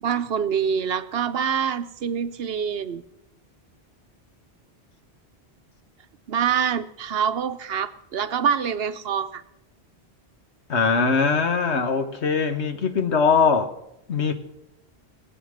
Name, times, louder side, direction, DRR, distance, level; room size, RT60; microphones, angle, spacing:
voice 1, 0.0-3.0 6.3-9.4, right 7 dB, 70° right, 0.9 m, -25 dB
voice 2, 10.7-13.7 14.1-14.3, left 5 dB, 85° left, 1.6 m, -21 dB
19.0 x 7.9 x 6.4 m
omnidirectional pair, 1.1 m